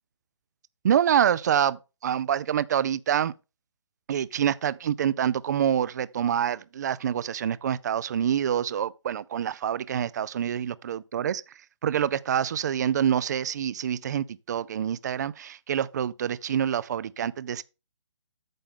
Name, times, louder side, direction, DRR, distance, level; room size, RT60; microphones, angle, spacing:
voice 1, 0.8-3.3 4.1-11.4 11.8-17.6, right 9 dB, 35° right, 0.4 m, -26 dB
9.0 x 6.9 x 3.7 m
hypercardioid pair, 160°, 15 cm